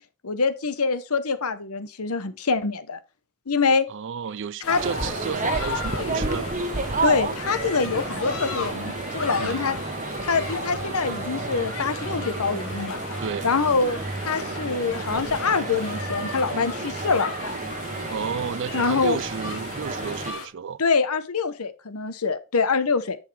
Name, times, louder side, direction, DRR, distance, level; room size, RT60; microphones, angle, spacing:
voice 1, 0.2-3.0 3.5-3.9 4.7-4.8 5.9-6.2 7.0-9.8 10.2-13.0 13.4-17.3 18.7-19.2 20.8-23.2, left 4 dB, 85° left, 1.0 m, -25 dB
voice 2, 3.9-6.5 9.4-9.7 13.2-13.5 18.1-20.8, right 6 dB, 55° right, 0.4 m, -32 dB
sound 1, 4.6-20.5, left 4 dB, 70° left, 1.9 m, -36 dB
sound 2, 4.7-20.3, right 3 dB, 35° right, 1.1 m, -31 dB
10.5 x 6.5 x 3.4 m
head